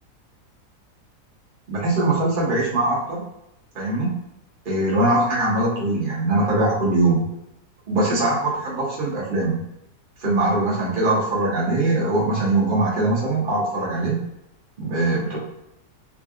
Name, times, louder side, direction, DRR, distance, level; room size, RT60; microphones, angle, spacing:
voice 1, 1.7-3.2 3.7-4.1 4.6-7.2 7.9-9.6 10.2-14.2 14.8-15.4, right 2 dB, 35° right, -6 dB, 1.3 m, -21 dB
3.8 x 3.3 x 2.4 m, 0.82 s
omnidirectional pair, 1.8 m